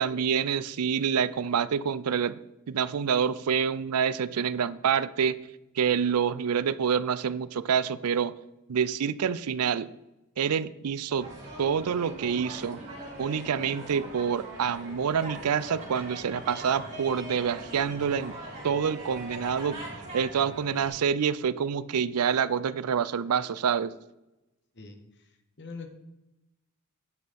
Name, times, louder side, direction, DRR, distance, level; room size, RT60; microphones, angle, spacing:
voice 1, 0.0-2.4 2.7-5.4 5.8-8.3 8.7-9.9 10.4-11.3 11.6-12.8 13.2-18.3 18.6-19.8 20.1-23.9, right 7 dB, 90° right, 17 dB, 0.5 m, -27 dB
sound 1, 11.1-20.9, right 1 dB, 35° right, 4.0 m, -41 dB
voice 2, 24.7-25.9, left 4 dB, 55° left, 5 dB, 1.5 m, -44 dB
9.6 x 6.2 x 5.2 m, 0.95 s
head